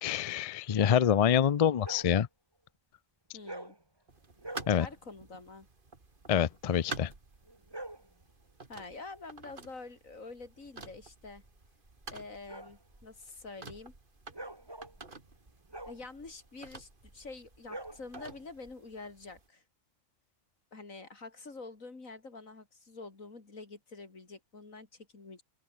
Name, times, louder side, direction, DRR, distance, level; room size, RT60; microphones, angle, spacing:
voice 1, 0.0-2.3 4.7-4.9 6.3-7.1, left 8 dB, 55° left, 0.4 m, -26 dB
sound 1, 1.8-2.2 3.4-3.8 4.4-4.8 7.4-8.1 10.7-18.7, right 1 dB, 20° right, 2.5 m, -47 dB
voice 2, 3.3-3.8 4.8-5.7 8.7-11.4 12.1-13.9 15.9-19.6 20.7-25.4, left 3 dB, 85° left, 3.8 m, -47 dB
sound 2, 4.1-19.5, right 3 dB, 40° right, 2.4 m, -50 dB
open air
omnidirectional pair, 1.4 m